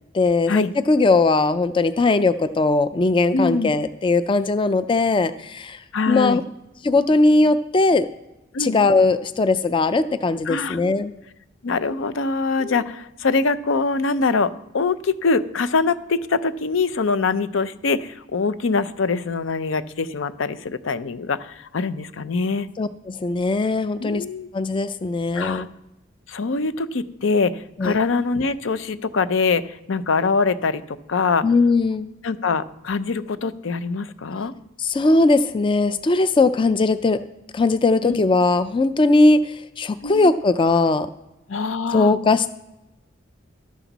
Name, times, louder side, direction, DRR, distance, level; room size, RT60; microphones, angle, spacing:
voice 1, 0.1-6.4 6.8-8.1 8.6-11.1 12.6-12.8 22.8-24.2 24.5-25.7 27.8-28.0 31.4-32.1 34.8-37.2 37.5-41.1 41.9-42.5, left 3 dB, 25° left, 13 dB, 0.4 m, -19 dB
voice 2, 3.3-3.7 5.9-6.4 8.5-8.8 10.5-10.8 11.6-22.7 24.0-24.5 25.3-25.7 26.3-31.5 32.2-34.5 38.0-38.2 40.0-40.3 41.5-42.1, left 4 dB, 80° left, 14 dB, 0.6 m, -23 dB
12.5 x 12.0 x 4.0 m, 0.96 s
head